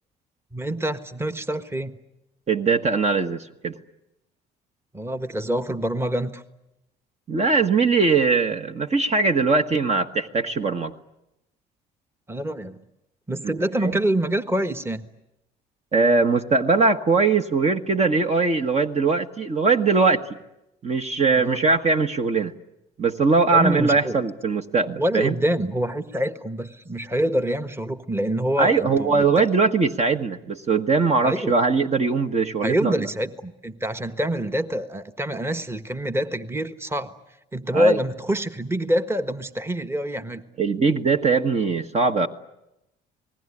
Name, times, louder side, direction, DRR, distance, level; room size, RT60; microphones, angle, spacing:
voice 1, 0.5-2.0 4.9-6.4 12.3-12.8 13.3-15.1 21.3-21.6 23.5-24.2 25.0-29.4 31.2-31.5 32.6-37.2 37.5-40.4, equal, 15° right, 10 dB, 1.4 m, -26 dB
voice 2, 2.5-3.7 7.3-10.9 13.4-13.5 13.8-14.0 15.9-20.2 20.8-22.5 23.0-25.4 28.6-33.0 37.7-38.0 40.6-42.3, right 4 dB, 35° right, 7 dB, 1.4 m, -21 dB
27.5 x 19.5 x 9.9 m, 0.92 s
supercardioid pair, 70°, 18 cm